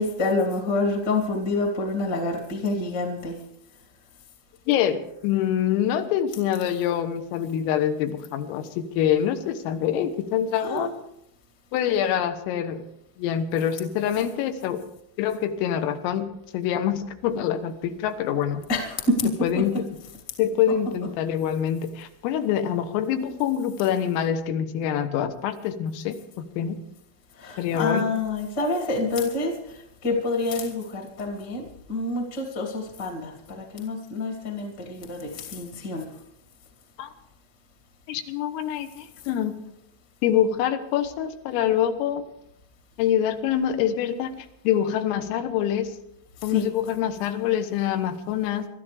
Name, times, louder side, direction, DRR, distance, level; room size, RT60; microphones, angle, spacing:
voice 1, 0.0-3.4 10.5-10.9 18.7-19.6 21.0-21.1 27.4-36.1 46.4-46.7, left 2 dB, 35° left, 1 dB, 1.8 m, -27 dB
voice 2, 4.7-10.9 11.7-12.8 13.2-14.9 15.2-18.6 19.4-20.0 20.4-26.8 27.6-28.1 37.0-37.1 38.1-39.6 40.2-42.2 43.0-46.0 46.4-48.7, left 9 dB, 85° left, 9 dB, 3.8 m, -25 dB
26.0 x 13.5 x 3.4 m, 0.78 s
omnidirectional pair, 5.8 m